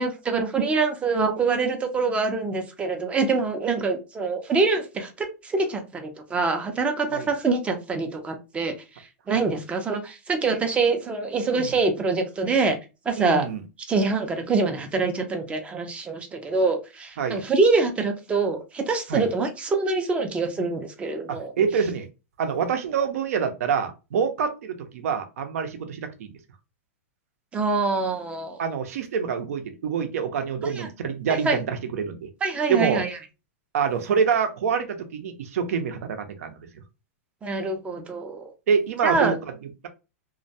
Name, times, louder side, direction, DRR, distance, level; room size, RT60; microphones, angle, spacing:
voice 1, 0.0-12.8 13.1-13.5 13.9-21.5 27.5-28.6 30.8-30.9 31.4-31.6 32.4-33.2 37.4-38.5 39.0-39.3, right 4 dB, 15° right, 5 dB, 0.5 m, -25 dB
voice 2, 13.1-13.6 17.2-17.5 19.1-19.3 21.3-22.1 22.4-26.3 28.6-32.2 32.7-33.0 33.7-36.5 38.7-39.4, right 6 dB, 70° right, 7 dB, 0.6 m, -26 dB
2.2 x 2.2 x 2.6 m, 0.29 s
hypercardioid pair, 135°, 8 cm